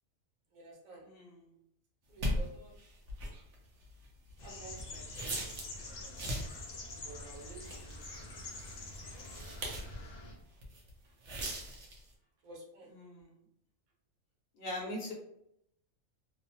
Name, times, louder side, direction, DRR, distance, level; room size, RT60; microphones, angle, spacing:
voice 1, 0.5-1.1 2.1-2.7 4.4-6.4 7.0-8.4 9.0-9.5 9.8-10.1 11.0-11.1 12.4-12.9, right 2 dB, 90° right, 0 dB, 1.2 m, -53 dB
voice 2, 1.0-1.5 12.9-13.3 14.5-15.1, left 1 dB, 50° left, -2 dB, 0.8 m, -41 dB
sound 1, 2.2-5.8 6.1-6.7 7.3-10.0 10.4-10.9 11.2-12.1, equal, 65° right, 1.0 m, -39 dB
sound 2, 4.4-10.3, left 2 dB, 90° left, 0.3 m, -46 dB
2.9 x 2.0 x 2.6 m, 0.76 s
omnidirectional pair, 1.4 m